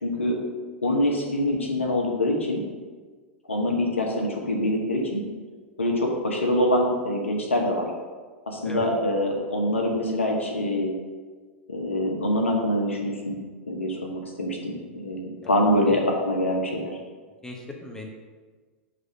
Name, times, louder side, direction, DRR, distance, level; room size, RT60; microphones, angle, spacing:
voice 1, 0.0-0.4 0.8-2.6 3.5-5.2 5.8-7.9 8.5-10.9 11.7-13.4 13.7-16.9, left 1 dB, 85° left, 0 dB, 1.1 m, -25 dB
voice 2, 17.4-18.1, left 3 dB, 10° left, 0 dB, 1.0 m, -37 dB
6.4 x 3.4 x 5.2 m, 1.4 s
figure-of-eight pair, 95°, 7 cm